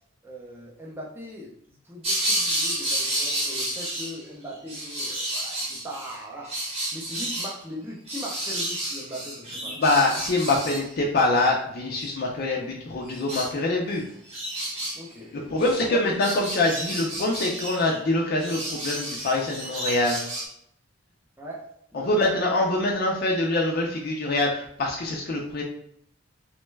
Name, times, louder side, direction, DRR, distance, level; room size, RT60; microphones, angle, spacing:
voice 1, 0.2-6.6 6.9-9.8 14.9-15.6 15.9-16.0 21.4-22.3, equal, 10° right, -3 dB, 0.5 m, -40 dB
sound 1, 2.0-4.2 4.5-6.2 6.4-7.5 8.1-10.9 11.9-12.1 13.1-13.5 13.9-14.0 14.3-15.0 15.6-15.9 16.2-18.0 18.4-20.5, right 1 dB, 30° right, 0.9 m, -31 dB
voice 2, 9.7-14.1 15.3-20.2 21.9-25.6, left 2 dB, 45° left, -1 dB, 0.4 m, -24 dB
3.1 x 2.2 x 3.1 m, 0.71 s
head